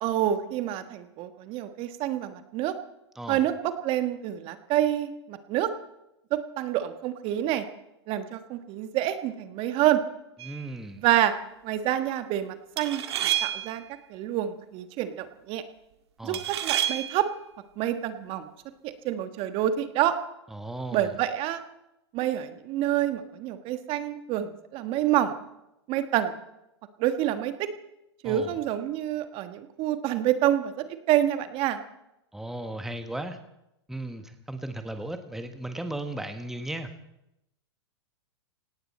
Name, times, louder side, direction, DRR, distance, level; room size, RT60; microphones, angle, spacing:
voice 1, 0.0-2.7 3.3-5.7 6.3-7.6 8.1-10.0 11.0-11.3 11.6-13.8 14.1-15.6 16.2-17.3 17.8-18.5 18.8-20.1 20.9-21.6 22.1-25.3 25.9-26.3 27.0-27.7 28.2-31.8, right 12 dB, 40° right, 9 dB, 1.4 m, -27 dB
voice 2, 10.4-11.0 16.2-16.4 20.5-21.1 28.2-28.5 32.3-33.4 33.9-36.9, right 1 dB, ahead, 8 dB, 1.3 m, -36 dB
sound 1, 10.4-10.7 12.8-13.8 16.3-17.2, right 11 dB, 70° right, 1.9 m, -29 dB
18.0 x 17.5 x 4.3 m, 0.86 s
hypercardioid pair, 115°, 14 cm